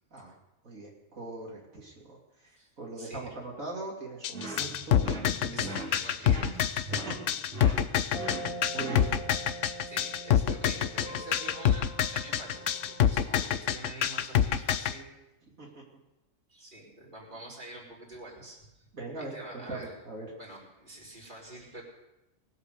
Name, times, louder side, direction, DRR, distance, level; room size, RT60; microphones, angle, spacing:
voice 1, 0.6-2.2 2.8-5.1 5.4-5.8 7.0-7.1 8.7-9.1 15.6-15.8 18.9-20.3, right 2 dB, 90° right, -2 dB, 3.3 m, -40 dB
voice 2, 3.0-3.4 4.4-6.8 9.9-15.2 16.5-18.9 19.2-20.0 20.4-21.8, right 1 dB, 35° right, -4 dB, 4.3 m, -46 dB
sound 1, 4.2-14.9, left 9 dB, 70° left, 1.0 m, -26 dB
sound 2, 4.3-9.4, right 2 dB, 55° right, 4.1 m, -41 dB
sound 3, 8.1-13.3, right 1 dB, 30° left, 1.3 m, -43 dB
20.5 x 8.2 x 6.6 m, 0.95 s
omnidirectional pair, 1.4 m